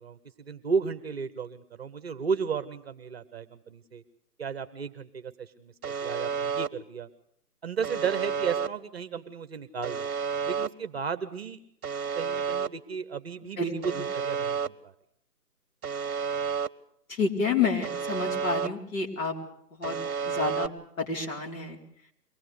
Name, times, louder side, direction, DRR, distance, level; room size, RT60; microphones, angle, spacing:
voice 1, 0.0-4.0 4.4-7.1 7.6-10.1 10.4-11.6 12.1-14.9, right 6 dB, 40° right, 10 dB, 1.1 m, -34 dB
Alarm, 5.8-6.7 7.8-8.7 9.8-10.7 11.8-12.7 13.8-14.7 15.8-16.7 17.8-18.7 19.8-20.7, right 6 dB, 60° right, 0.9 m, -30 dB
voice 2, 17.1-19.3 19.7-20.0 20.2-20.7 21.0-21.8, left 4 dB, 55° left, 0 dB, 4.6 m, -29 dB
23.5 x 18.0 x 8.1 m, 0.69 s
hypercardioid pair, 155°, 49 cm